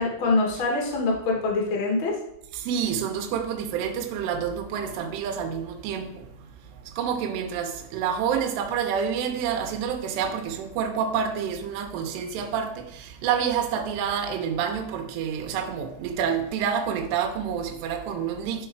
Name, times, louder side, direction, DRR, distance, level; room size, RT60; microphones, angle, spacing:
voice 1, 0.0-2.2, left 3 dB, 80° left, 1.1 m, -24 dB
voice 2, 2.5-6.3 6.7-18.7, right 7 dB, 85° right, 2.5 m, -28 dB
10.5 x 3.9 x 4.7 m
omnidirectional pair, 5.9 m